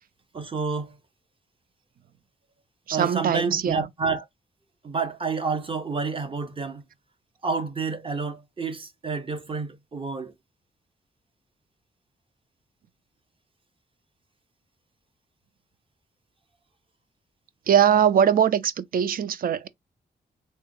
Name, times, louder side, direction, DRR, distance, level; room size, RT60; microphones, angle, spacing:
voice 1, 0.3-1.0 2.9-4.2 4.8-6.8 7.4-10.3, right 4 dB, 30° right, 0.7 m, -29 dB
voice 2, 2.9-3.9 17.7-19.7, right 8 dB, 55° right, 0.4 m, -21 dB
3.4 x 2.1 x 3.0 m
cardioid pair, 95°, 18 cm